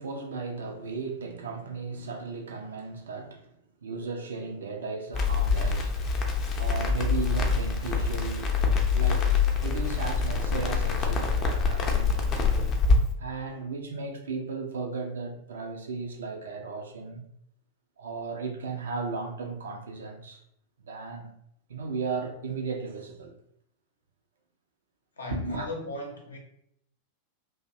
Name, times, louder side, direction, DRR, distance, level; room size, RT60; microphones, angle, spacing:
voice 1, 0.0-3.5 3.8-6.0 6.6-8.6 8.9-12.3 13.2-17.2 18.0-20.4 20.9-21.3 21.7-23.4 25.3-25.7, right 4 dB, 65° right, 0.4 m, -35 dB
Crackle, 5.1-13.0, left 5 dB, 30° left, 0.5 m, -25 dB
voice 2, 25.2-26.4, left 2 dB, 75° left, 0.6 m, -37 dB
2.5 x 2.0 x 2.6 m
figure-of-eight pair, 90°, 0 cm